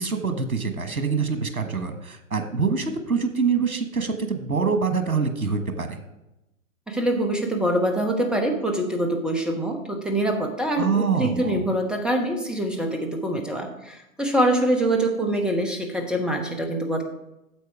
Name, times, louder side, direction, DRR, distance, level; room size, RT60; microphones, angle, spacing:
voice 1, 0.0-6.0 10.8-11.7, right 5 dB, 85° right, 7 dB, 1.3 m, -25 dB
voice 2, 6.9-17.0, right 1 dB, ahead, 4 dB, 1.0 m, -24 dB
9.4 x 7.3 x 4.7 m, 0.92 s
figure-of-eight pair, 115°, 42 cm